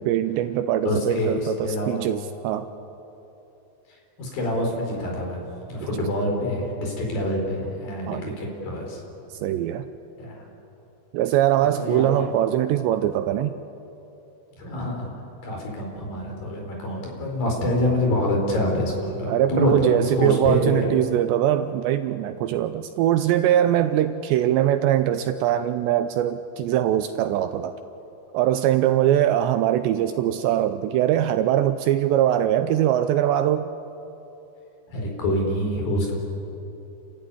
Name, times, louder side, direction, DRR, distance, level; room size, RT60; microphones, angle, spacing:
voice 1, 0.0-2.7 8.1-8.4 9.3-9.9 11.1-13.6 19.3-27.8 28.3-33.7, right 11 dB, 80° right, 10 dB, 2.6 m, -22 dB
voice 2, 0.8-2.1 4.2-5.4 5.7-9.0 10.2-10.4 11.6-12.3 14.6-15.2 15.4-21.0 34.9-36.1, left 1 dB, 50° left, 0 dB, 5.8 m, -26 dB
29.5 x 14.0 x 9.8 m, 2.9 s
omnidirectional pair, 5.6 m